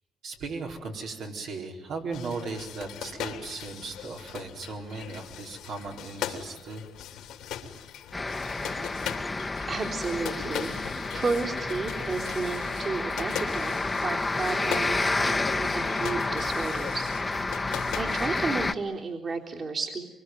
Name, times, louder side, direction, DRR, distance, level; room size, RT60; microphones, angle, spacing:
voice 1, 0.2-6.8, right 3 dB, 75° right, 0 dB, 4.4 m, -37 dB
sound 1, 2.1-18.6, left 9 dB, 85° left, 3.0 m, -40 dB
sound 2, 8.1-18.7, left 3 dB, 20° left, 1.2 m, -30 dB
voice 2, 9.7-10.9 11.1-17.1 18.0-20.1, right 4 dB, 45° right, -1 dB, 3.6 m, -32 dB
24.5 x 24.5 x 9.4 m, 1.0 s
cardioid pair, 90°, 0 cm